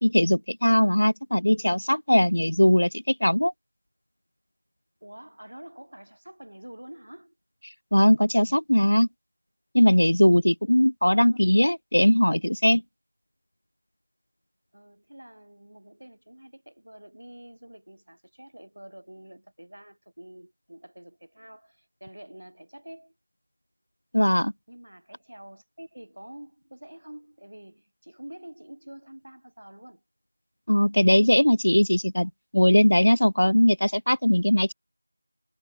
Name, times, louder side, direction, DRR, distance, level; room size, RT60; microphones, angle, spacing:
voice 1, 0.0-3.5 7.9-9.1 9.7-12.8 24.1-24.5 30.7-34.7, equal, 90° left, 0.4 m, -20 dB
voice 2, 5.0-7.4 11.1-11.4 14.7-23.1 24.2-24.4 24.7-30.0, right 1 dB, 70° right, 7.5 m, -47 dB
figure-of-eight pair, 180°, 0 cm